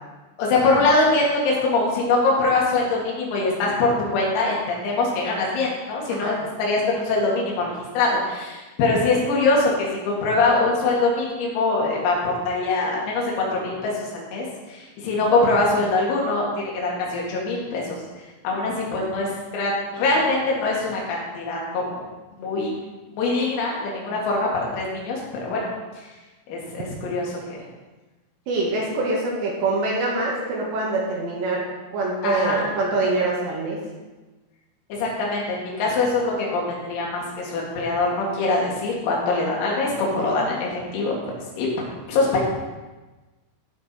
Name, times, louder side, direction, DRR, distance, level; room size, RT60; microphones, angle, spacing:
voice 1, 0.4-13.3 13.5-14.5 15.0-18.0 18.4-22.0 22.4-22.7 23.1-25.7 26.5-27.6 32.2-32.7 34.9-41.2 41.6-42.4, left 3 dB, 85° left, -3 dB, 5.0 m, -23 dB
voice 2, 28.5-31.7 31.9-33.8, right 2 dB, 65° right, -3 dB, 3.7 m, -24 dB
15.5 x 5.9 x 4.4 m, 1.2 s
omnidirectional pair, 6.0 m